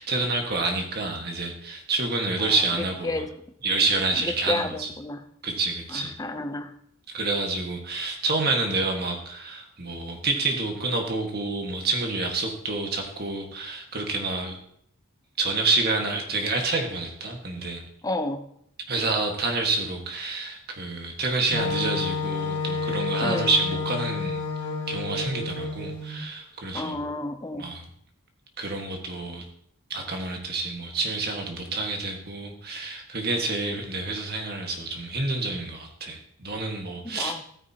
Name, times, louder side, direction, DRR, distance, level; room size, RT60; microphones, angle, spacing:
voice 1, 0.0-3.2 3.6-4.9 5.4-6.2 7.1-14.6 15.4-17.8 18.9-24.4 24.9-27.1 27.5-27.8 28.6-29.4 29.9-37.3, right 3 dB, 45° right, 2 dB, 1.6 m, -28 dB
voice 2, 4.5-5.2 5.9-6.7 18.0-18.5 23.2-23.5 26.7-27.7 37.1-37.4, left 2 dB, 15° left, 8 dB, 0.6 m, -31 dB
Wind instrument woodwind instrument, 21.5-26.2, left 4 dB, 85° left, 2.0 m, -30 dB
14.0 x 9.0 x 2.9 m, 0.69 s
head